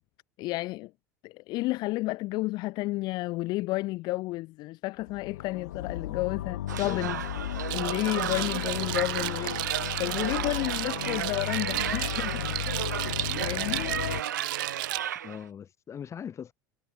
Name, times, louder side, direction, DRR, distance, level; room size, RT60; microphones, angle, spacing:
voice 1, 0.4-0.9 1.2-7.2 7.7-9.6 10.0-12.4 12.8-13.9, left 20 dB, 45° left, 0.5 m, -31 dB
sound 1, 5.0-14.2, left 13 dB, 70° left, 1.2 m, -35 dB
sound 2, 6.7-15.4, right 10 dB, 75° right, 1.0 m, -34 dB
sound 3, 7.7-15.0, right 23 dB, 50° right, 1.2 m, -35 dB
voice 2, 15.2-16.5, left 8 dB, 30° left, 1.6 m, -40 dB
figure-of-eight pair, 75°, 10 cm